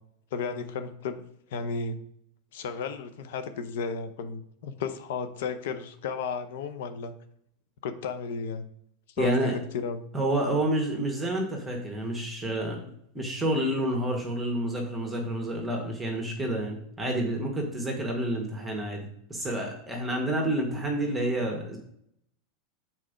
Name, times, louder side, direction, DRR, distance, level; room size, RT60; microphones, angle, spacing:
voice 1, 0.3-1.2 1.5-2.0 2.5-7.1 7.8-8.6 9.2-10.0 12.8-12.9, left 5 dB, 75° left, 10 dB, 0.8 m, -33 dB
voice 2, 9.2-9.5 10.1-12.8 13.1-19.0 19.3-21.8, right 1 dB, 10° right, 1 dB, 1.5 m, -29 dB
6.4 x 4.4 x 5.1 m, 0.70 s
supercardioid pair, 135°, 0 cm